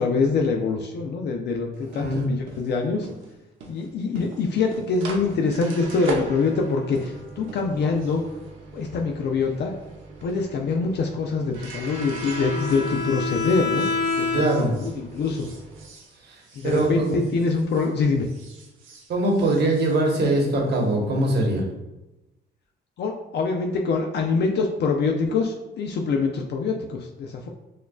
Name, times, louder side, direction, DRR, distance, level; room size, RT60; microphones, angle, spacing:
voice 1, 0.0-3.1 3.7-8.2 8.7-9.7 10.2-13.9 14.2-14.4 14.8-15.5 16.6-18.3 23.0-27.5, left 4 dB, 60° left, 2 dB, 0.5 m, -24 dB
sound 1, 1.7-17.9 18.2-20.8, right 2 dB, 90° right, 0.7 m, -39 dB
voice 2, 1.9-2.3 14.3-14.7 16.2-17.2 19.1-21.7, right 1 dB, 60° right, 0 dB, 1.1 m, -22 dB
Bowed string instrument, 11.9-14.9, left 3 dB, 25° left, 1.2 m, -28 dB
6.4 x 2.3 x 2.3 m, 0.99 s
cardioid pair, 90°, 20 cm